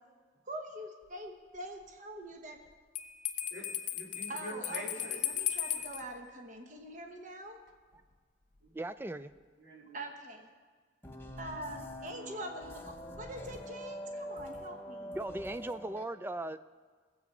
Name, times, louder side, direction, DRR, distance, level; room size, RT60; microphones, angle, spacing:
voice 1, 0.5-2.6 4.3-7.6 9.9-10.5 11.4-15.2, right 1 dB, 40° right, 3 dB, 1.1 m, -44 dB
Bell, 2.9-6.0, left 11 dB, 40° left, 0.8 m, -36 dB
voice 2, 3.5-5.2 8.6-8.7 9.6-10.0, equal, 75° right, -3 dB, 3.2 m, -45 dB
voice 3, 8.7-9.3 15.1-16.6, right 1 dB, 10° right, 13 dB, 0.3 m, -38 dB
sound 1, 11.0-16.0, equal, 10° left, 0.8 m, -44 dB
19.0 x 8.2 x 5.4 m, 1.6 s
head